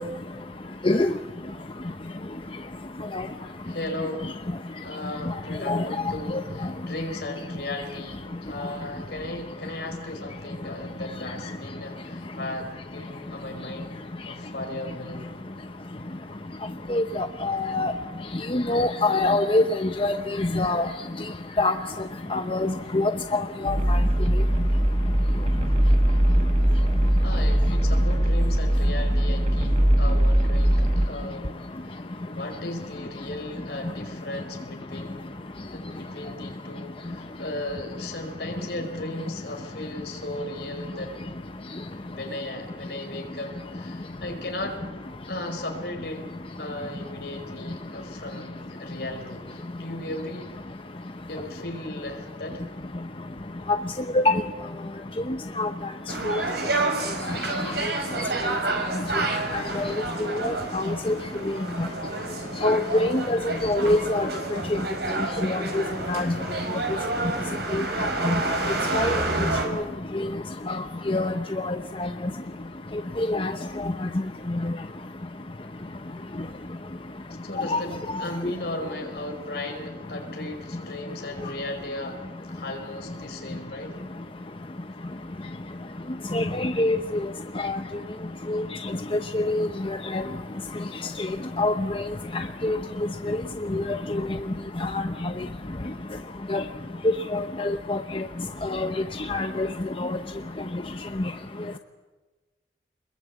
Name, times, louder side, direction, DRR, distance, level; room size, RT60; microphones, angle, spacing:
voice 1, 3.6-4.3 4.8-15.3 27.2-35.3 35.7-41.1 42.1-44.8 45.3-46.3 46.6-50.5 51.3-52.6 77.4-84.0, left 1 dB, 65° left, 3 dB, 5.1 m, -36 dB
voice 2, 16.9-17.9 18.5-20.9 21.6-21.7 22.3-24.0 54.1-54.4 55.6-55.7 56.2-56.4 59.5-59.9 60.4-61.1 62.6-64.3 65.5-65.8 66.1-66.3 67.7-67.8 68.2-68.3 68.9-69.2 70.7-70.8 71.1-71.3 71.6-72.1 73.2-73.5 77.7-77.8 86.3-87.0 87.6-87.8 88.5-88.6 89.3-89.7 90.1-90.2 91.6-91.7 92.6-92.8 93.3-93.4 93.7-93.8 94.8-95.0 96.5-96.6 97.3-98.0 98.7-98.9 99.3-99.7 100.0-100.1, left 2 dB, 30° left, 7 dB, 0.8 m, -24 dB
sound 1, 23.7-31.1, right 1 dB, 35° right, 1.6 m, -21 dB
sound 2, 56.1-69.6, right 2 dB, 65° right, 5.1 m, -29 dB
27.5 x 21.5 x 8.4 m, 1.3 s
head